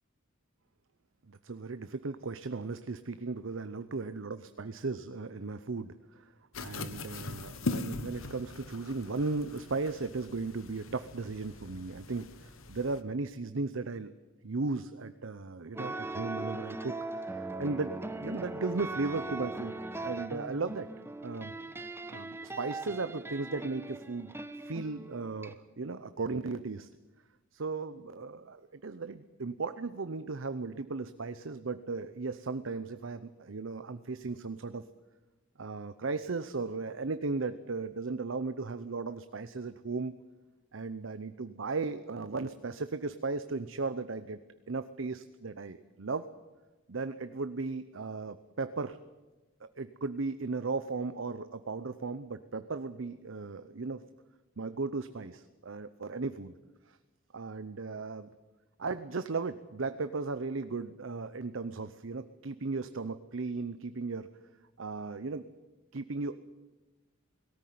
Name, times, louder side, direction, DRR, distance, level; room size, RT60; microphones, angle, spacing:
voice 1, 1.3-6.3 6.6-14.1 14.4-20.9 21.2-21.5 22.1-24.3 24.7-26.9 27.5-34.8 35.6-40.1 40.7-44.4 44.7-46.3 46.9-49.0 49.6-54.0 54.6-56.6 56.9-57.0 57.3-58.3 58.8-64.3 64.8-65.4 65.9-66.4, right 3 dB, 70° right, 12 dB, 0.7 m, -36 dB
sound 1, 6.5-13.0, left 3 dB, 85° left, 1.3 m, -41 dB
sound 2, 15.7-25.5, right 2 dB, 10° right, 0.9 m, -40 dB
18.0 x 17.5 x 9.4 m, 1.2 s
head